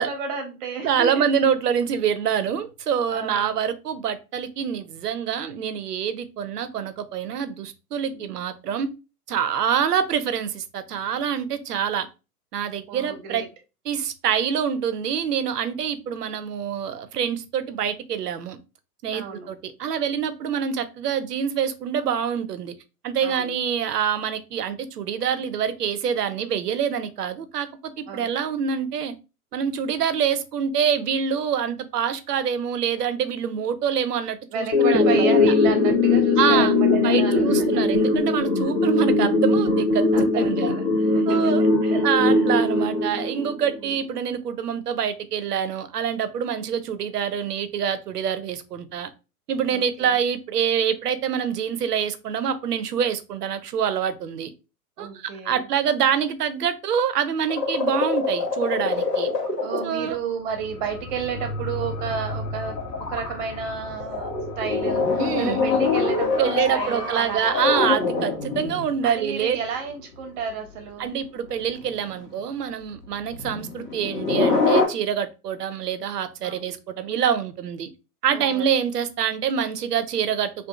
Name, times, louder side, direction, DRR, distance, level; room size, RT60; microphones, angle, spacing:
voice 1, 0.0-1.3 3.1-3.6 8.1-8.3 12.9-13.5 15.9-16.2 19.1-19.5 23.2-23.5 28.1-28.3 34.5-38.1 40.1-42.5 43.7-44.2 49.7-50.2 55.0-55.6 59.6-67.6 69.0-71.1 76.4-76.8 78.3-78.7, right 6 dB, 30° right, 0.7 m, -32 dB
voice 2, 0.8-8.9 9.3-12.1 12.5-13.4 13.9-18.6 19.0-22.7 23.0-27.7 28.0-29.1 29.5-35.3 36.4-36.7 37.0-40.0 40.3-40.7 41.3-41.6 42.0-49.1 49.5-54.5 55.0-59.3 59.8-60.2 65.2-65.6 66.4-69.6 71.0-77.9 78.2-80.7, right 8 dB, 80° right, 0.6 m, -26 dB
sound 1, 34.7-43.7, left 3 dB, 30° left, 0.4 m, -20 dB
sound 2, 57.5-60.1 60.8-60.9 61.2-61.3 61.7-69.0 70.7-70.8 71.7-72.1 73.3-74.9, left 4 dB, 90° left, 1.0 m, -25 dB
sound 3, 60.4-69.5 69.9-70.0, left 1 dB, 60° left, 0.8 m, -37 dB
2.5 x 2.4 x 2.3 m
figure-of-eight pair, 115°, 47 cm